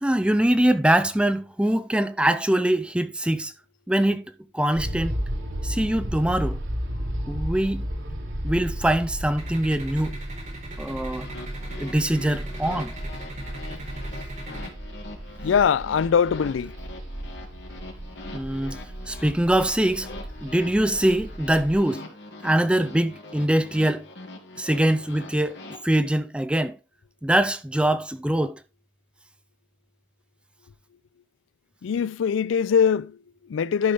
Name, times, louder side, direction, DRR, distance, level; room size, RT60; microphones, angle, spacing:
voice 1, 0.0-3.5 3.9-4.2 4.5-5.2 5.6-6.6 7.3-7.9 8.4-10.2 10.8-11.3 11.8-12.9 18.3-18.8 19.1-20.1 20.4-22.0 22.4-24.1 24.6-26.8 27.2-28.6, right 1 dB, 5° right, 0.4 m, -23 dB
sound 1, 4.7-21.8, equal, 85° right, 2.6 m, -34 dB
sound 2, 9.4-14.7, right 2 dB, 40° right, 4.3 m, -39 dB
sound 3, 11.0-25.8, left 2 dB, 65° left, 2.5 m, -43 dB
voice 2, 15.4-16.7 31.8-33.9, left 7 dB, 85° left, 0.4 m, -22 dB
11.5 x 5.4 x 3.5 m
head